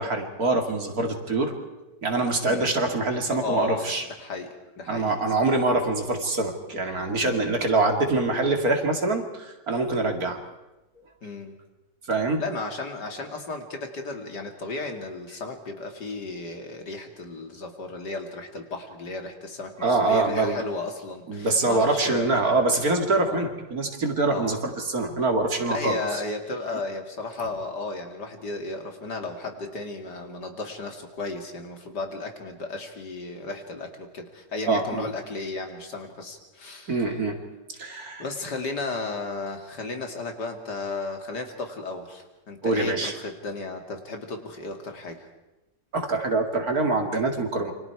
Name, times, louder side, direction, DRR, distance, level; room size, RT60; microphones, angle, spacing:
voice 1, 0.0-1.5 2.0-4.0 4.9-10.4 12.1-12.4 19.8-20.6 21.3-26.0 34.7-35.1 36.9-37.4 37.8-38.2 42.6-43.1 45.9-47.7, right 2 dB, 50° right, 4 dB, 2.8 m, -24 dB
voice 2, 2.4-2.8 3.3-3.9 4.2-5.1 7.2-7.6 11.2-11.6 12.4-22.6 23.3-23.5 24.3-24.6 25.7-37.2 37.8-45.3, left 3 dB, 65° left, 4 dB, 2.9 m, -34 dB
28.5 x 25.5 x 4.7 m, 1.0 s
omnidirectional pair, 2.0 m